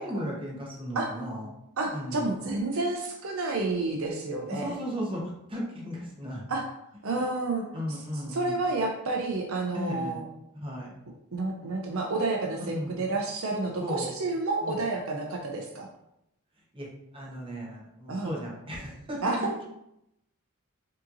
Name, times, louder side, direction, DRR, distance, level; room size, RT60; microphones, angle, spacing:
voice 1, 0.0-1.5 1.9-2.4 4.5-5.2 5.5-6.4 7.1-7.2 7.7-8.6 9.7-10.2 10.5-11.0 12.7-13.0 13.8-14.1 14.6-14.8 16.7-16.9 17.1-19.6, equal, 25° right, -3 dB, 1.1 m, -35 dB
voice 2, 1.8-4.8 6.5-6.6 7.0-7.6 8.3-10.2 11.3-15.9 18.1-18.3 19.2-19.5, right 3 dB, 70° right, 1 dB, 0.6 m, -30 dB
5.0 x 2.8 x 2.6 m, 0.81 s
head